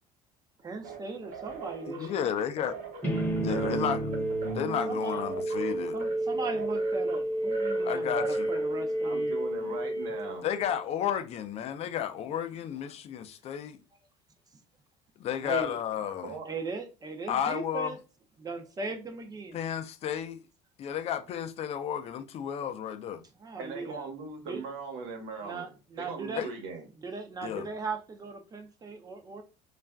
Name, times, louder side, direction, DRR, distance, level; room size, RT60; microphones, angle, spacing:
voice 1, 0.6-2.3 4.9-5.2 5.9-9.4 15.4-15.8 16.4-18.0 18.4-19.6 23.4-24.1 24.5-24.6 25.4-26.5 27.0-29.4, right 4 dB, 25° right, 0.4 m, -38 dB
sound 1, 0.8-9.1, right 5 dB, 60° right, 0.8 m, -42 dB
voice 2, 1.9-2.8 3.4-4.1 4.5-6.0 7.8-8.5 10.4-13.8 15.2-16.3 17.3-18.0 19.5-20.4 20.8-23.2 26.4-26.5 27.4-27.7, left 9 dB, 45° left, 0.4 m, -32 dB
sound 2, 3.0-10.9, right 1 dB, 15° left, 0.8 m, -31 dB
voice 3, 9.0-10.5 16.2-16.5 23.6-26.9, right 4 dB, 85° right, 1.0 m, -40 dB
2.3 x 2.1 x 3.4 m
cardioid pair, 115°, 15 cm